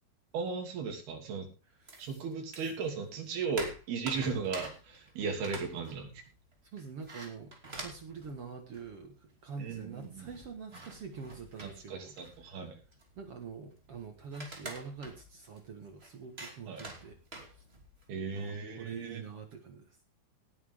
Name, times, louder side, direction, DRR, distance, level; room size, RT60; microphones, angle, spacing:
voice 1, 0.3-1.5 2.0-6.1 9.6-10.3 11.6-12.8 16.7-16.9 18.1-19.2, right 5 dB, 85° right, 3 dB, 4.9 m, -36 dB
sound 1, 1.9-2.9 3.2-9.1 9.4-9.5 9.7-18.0, right 2 dB, 20° right, 2.5 m, -47 dB
voice 2, 6.7-12.2 12.4-12.6 13.2-17.2 17.4-17.7 18.3-20.0, right 5 dB, 50° right, 6 dB, 1.9 m, -45 dB
18.5 x 9.1 x 3.7 m, 0.29 s
omnidirectional pair, 4.4 m